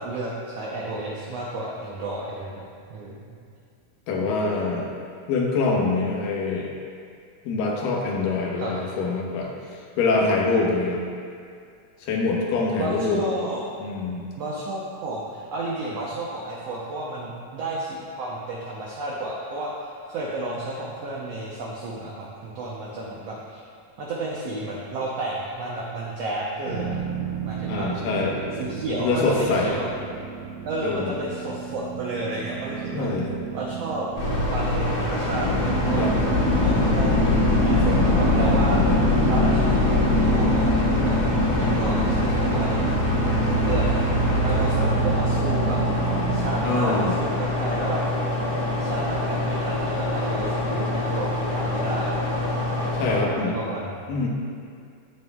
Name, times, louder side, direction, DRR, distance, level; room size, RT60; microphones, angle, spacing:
voice 1, 0.0-3.4 8.6-8.7 12.7-13.6 14.4-23.6 24.0-27.0 27.4-27.9 28.6-29.9 30.7-33.1 33.5-34.1 34.5-36.2 36.6-42.7 43.6-44.0 44.4-45.8 46.3-48.0 48.8-52.2 52.9-54.2, right 2 dB, 85° right, -4 dB, 1.4 m, -32 dB
voice 2, 4.1-4.9 5.3-6.7 7.5-11.0 12.0-13.2 13.8-14.2 27.7-28.4 28.9-29.7 30.8-31.1 32.9-33.3 36.0-36.1 46.6-47.2 52.9-53.6 54.1-54.3, left 3 dB, 80° left, -2 dB, 2.7 m, -24 dB
sound 1, 26.7-46.5, right 4 dB, 60° right, 1.3 m, -31 dB
sound 2, 34.2-53.2, left 1 dB, 50° left, 2.5 m, -26 dB
sound 3, 35.3-47.5, left 2 dB, 45° right, 2.9 m, -24 dB
15.0 x 6.3 x 2.3 m, 2.3 s
omnidirectional pair, 4.0 m